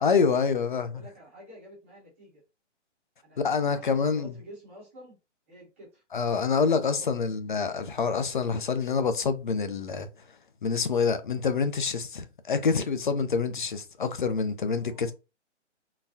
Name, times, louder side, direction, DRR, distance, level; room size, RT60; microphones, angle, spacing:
voice 1, 0.0-1.0 3.4-4.3 6.1-10.1 10.6-15.1, left 5 dB, 45° left, 0.5 m, -26 dB
voice 2, 0.8-2.4 3.2-5.2 5.5-6.0 6.7-7.2 14.8-15.1, equal, 10° right, 0.7 m, -49 dB
3.8 x 2.2 x 2.6 m
hypercardioid pair, 165°, 36 cm